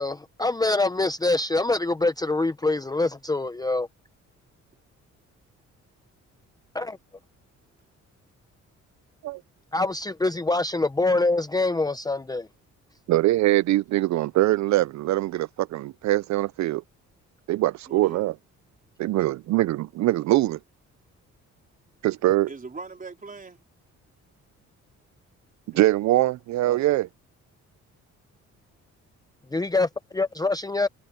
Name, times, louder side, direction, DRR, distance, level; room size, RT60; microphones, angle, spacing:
voice 1, 0.0-3.9 6.7-7.0 9.7-12.5 29.5-30.9, left 2 dB, 15° left, 0.8 m, -25 dB
voice 2, 13.1-16.8 17.5-18.3 19.0-20.6 22.0-22.5 25.7-27.1, right 16 dB, 70° right, 0.5 m, -23 dB
voice 3, 17.9-18.2 22.5-23.6 25.7-25.9 26.6-27.0, right 4 dB, 25° right, 4.2 m, -41 dB
cardioid pair, 90°, 30 cm